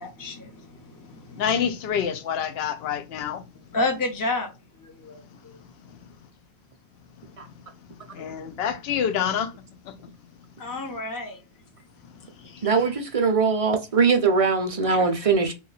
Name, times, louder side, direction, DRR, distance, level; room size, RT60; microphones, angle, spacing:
voice 1, 0.0-1.4 3.7-4.5 4.8-5.6 10.6-11.4 12.4-12.8 14.9-15.1, left 2 dB, 20° left, 0.7 m, -31 dB
voice 2, 1.4-3.4 8.1-9.5 9.9-10.0, left 8 dB, 70° left, 0.8 m, -27 dB
voice 3, 12.6-15.5, right 5 dB, 50° right, 0.4 m, -21 dB
3.0 x 2.3 x 3.9 m
omnidirectional pair, 1.1 m